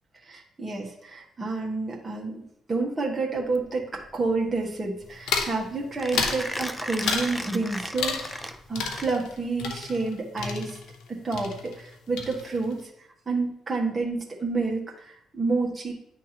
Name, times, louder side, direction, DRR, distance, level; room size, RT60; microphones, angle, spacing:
voice 1, 0.2-2.4 2.7-10.8 11.1-12.8 13.3-15.9, right 3 dB, 25° right, -2 dB, 1.5 m, -29 dB
Mechanisms, 3.4-9.5, equal, 5° left, 0.5 m, -37 dB
sound 1, 5.3-5.6 6.1-6.5 7.0-7.4 8.0-8.5 8.7-11.1 11.3-11.9 12.2-12.7, left 5 dB, 85° left, 0.8 m, -31 dB
10.0 x 3.5 x 3.0 m, 0.75 s
cardioid pair, 90°, 0 cm